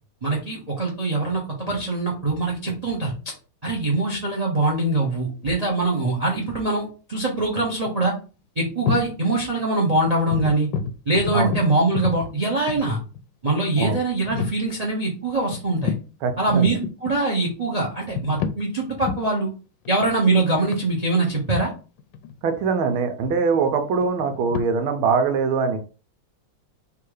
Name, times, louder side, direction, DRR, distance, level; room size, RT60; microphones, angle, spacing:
voice 1, 0.2-3.1 3.6-8.1 8.6-10.7 11.1-13.0 13.4-15.9 16.4-19.5 19.9-21.7, right 2 dB, 40° right, -1 dB, 0.5 m, -23 dB
sound 1, 5.1-5.8 7.5-7.6 7.9-8.1 8.7-9.2 9.5-9.7 10.1-13.2 13.8-13.9 14.2-14.6 15.5-16.1 16.6-17.2 17.9-18.6 19.0-19.3 19.9-22.9 23.2-24.6, left 6 dB, 75° left, 1.1 m, -30 dB
voice 2, 16.2-16.7 22.4-25.8, right 5 dB, 80° right, 6 dB, 1.5 m, -22 dB
3.6 x 2.9 x 4.7 m, 0.35 s
omnidirectional pair, 2.3 m